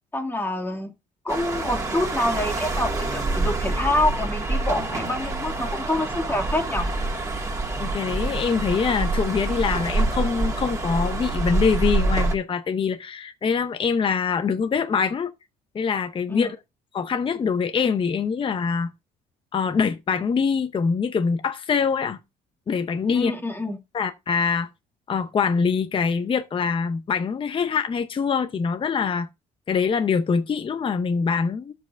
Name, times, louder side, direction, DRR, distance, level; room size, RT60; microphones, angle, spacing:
voice 1, 0.1-0.9 1.2-6.9 16.3-16.5 23.1-23.8, left 1 dB, 10° left, 2.0 m, -26 dB
sound 1, 1.3-12.4, right 2 dB, 20° right, 2.1 m, -26 dB
voice 2, 7.8-15.3 15.7-16.6 16.9-18.9 19.5-22.2 22.7-23.3 23.9-24.7 25.1-29.3 29.7-31.7, left 5 dB, 30° left, 0.7 m, -24 dB
13.0 x 7.5 x 2.5 m
cardioid pair, 110°, 17 cm